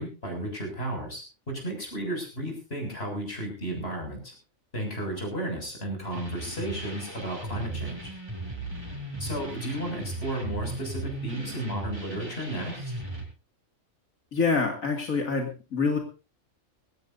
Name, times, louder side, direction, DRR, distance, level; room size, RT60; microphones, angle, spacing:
voice 1, 0.0-4.3 4.7-8.1 9.2-12.9, right 1 dB, 45° left, 3 dB, 7.4 m, -33 dB
sound 1, 6.1-13.2, right 2 dB, 20° right, 5.1 m, -37 dB
voice 2, 14.3-16.0, left 4 dB, 85° left, 3 dB, 2.8 m, -26 dB
21.0 x 17.5 x 2.7 m, 0.32 s
omnidirectional pair, 1.4 m